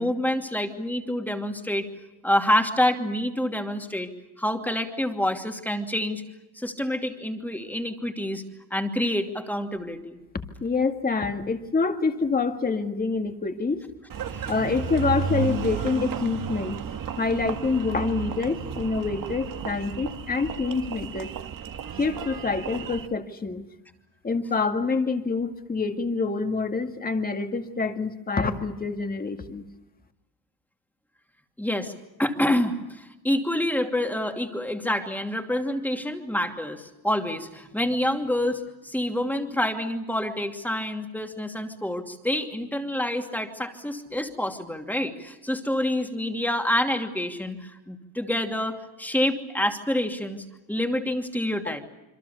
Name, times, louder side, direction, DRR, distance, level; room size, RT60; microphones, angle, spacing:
voice 1, 0.0-1.9 2.2-4.1 4.4-6.2 6.6-8.4 8.7-10.2 14.3-14.5 31.6-31.9 32.2-51.8, left 1 dB, 5° left, 4 dB, 2.7 m, -27 dB
voice 2, 10.6-13.8 14.5-16.8 17.2-21.3 22.0-23.7 24.2-29.7, left 4 dB, 20° left, 6 dB, 2.1 m, -26 dB
Engine, 14.1-23.1, right 7 dB, 55° right, 1.7 m, -33 dB
27.0 x 26.0 x 7.1 m, 0.97 s
cardioid pair, 165°, 39 cm